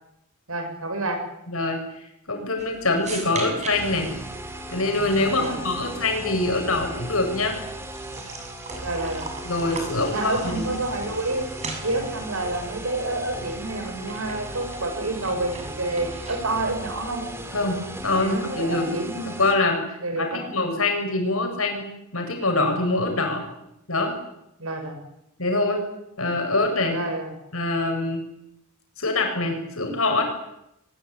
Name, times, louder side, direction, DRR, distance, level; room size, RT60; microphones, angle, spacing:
voice 1, 0.5-1.2 5.3-5.6 8.8-9.3 10.1-11.4 11.8-17.2 18.2-19.3 20.0-20.5 24.6-25.0 26.9-27.3, right 2 dB, 85° right, 6 dB, 7.6 m, -28 dB
voice 2, 1.5-1.8 2.3-4.1 4.7-7.6 9.4-10.6 17.5-18.8 19.3-19.8 20.1-21.8 22.1-23.5 23.9-24.2 25.4-25.8 26.2-27.0 27.5-28.2 29.0-30.2, left 2 dB, 85° left, 4 dB, 7.8 m, -24 dB
sound 1, 2.6-16.6, right 3 dB, 35° right, 7.0 m, -40 dB
sound 2, 3.7-19.5, right 1 dB, 10° right, 4.0 m, -37 dB
23.5 x 21.0 x 9.8 m, 0.82 s
head